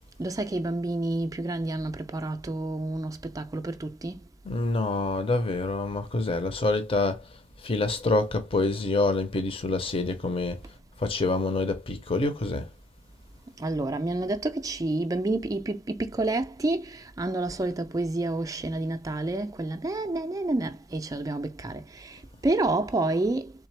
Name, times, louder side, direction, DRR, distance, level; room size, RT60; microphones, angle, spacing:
voice 1, 0.2-4.2 13.6-23.5, right 2 dB, 20° right, 0.3 m, -29 dB
voice 2, 4.5-7.2 7.6-10.6 11.0-12.7, left 2 dB, 30° left, 0.6 m, -26 dB
3.6 x 3.3 x 3.2 m
head